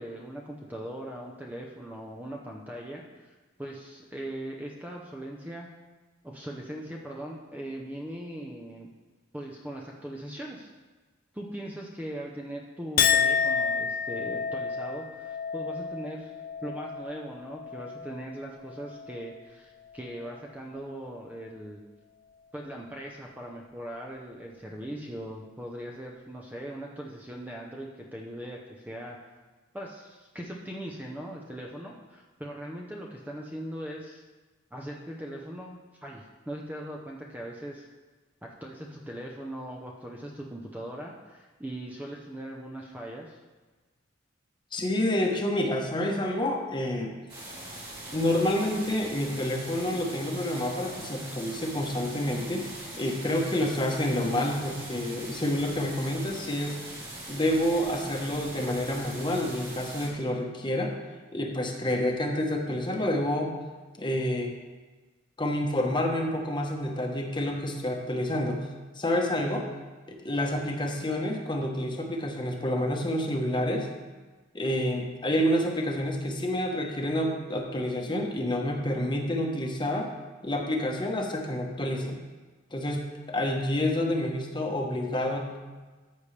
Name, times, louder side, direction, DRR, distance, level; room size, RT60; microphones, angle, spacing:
voice 1, 0.0-5.7 6.2-8.9 9.3-10.7 11.3-16.3 16.6-21.8 22.5-29.2 29.7-34.2 34.7-37.9 38.4-43.4, right 1 dB, 10° right, -1 dB, 0.7 m, -40 dB
Chink clink, 13.0-19.5 19.9-20.5, left 6 dB, 45° left, 0.4 m, -30 dB
voice 2, 44.7-47.1 48.1-56.8 57.3-60.9 61.3-63.5 64.0-64.5 65.4-68.7 68.9-69.7 70.1-73.9 74.5-80.1 80.4-82.2 82.7-85.6, left 1 dB, 25° left, 1 dB, 1.1 m, -28 dB
sound 1, 47.3-60.1, right 1 dB, 25° right, 3.0 m, -41 dB
13.5 x 7.0 x 3.3 m, 1.3 s
head